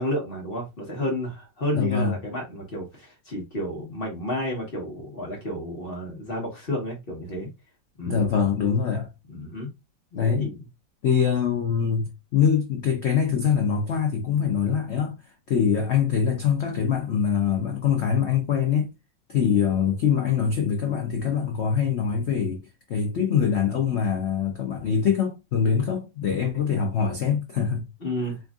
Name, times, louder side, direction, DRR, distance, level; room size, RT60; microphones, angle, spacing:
voice 1, 0.0-7.5 8.0-8.2 9.3-9.7 10.1-10.5 28.0-28.4, left 1 dB, 40° left, 0.9 m, -31 dB
voice 2, 1.7-2.1 8.1-9.1 10.1-10.5 11.0-15.2 15.5-18.9 19.3-22.6 22.9-27.9, left 7 dB, 85° left, 0.6 m, -23 dB
4.4 x 2.6 x 2.3 m
omnidirectional pair, 2.0 m